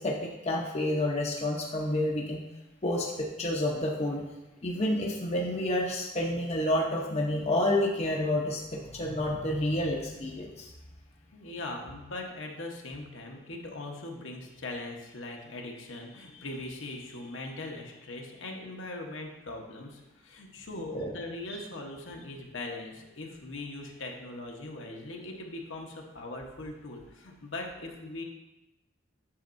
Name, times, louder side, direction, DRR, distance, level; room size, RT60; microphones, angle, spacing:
voice 1, 0.0-2.4 2.8-4.2 4.6-10.7 20.9-21.1 21.5-21.6, left 1 dB, 30° left, -2 dB, 0.7 m, -29 dB
voice 2, 11.3-28.2, left 2 dB, 65° left, 0 dB, 1.0 m, -40 dB
8.6 x 6.5 x 2.6 m, 1.0 s
head